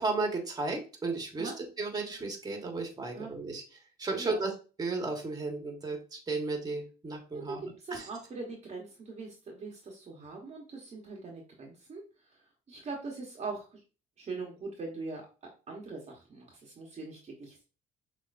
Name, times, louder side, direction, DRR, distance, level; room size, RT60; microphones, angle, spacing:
voice 1, 0.0-3.6 4.0-4.5 4.8-8.1, right 3 dB, 25° right, 2 dB, 1.5 m, -34 dB
voice 2, 7.4-12.0 12.7-13.8 14.2-15.3 15.7-17.6, right 3 dB, 40° right, -1 dB, 1.2 m, -41 dB
6.4 x 2.9 x 2.6 m, 0.35 s
cardioid pair, 110°, 17 cm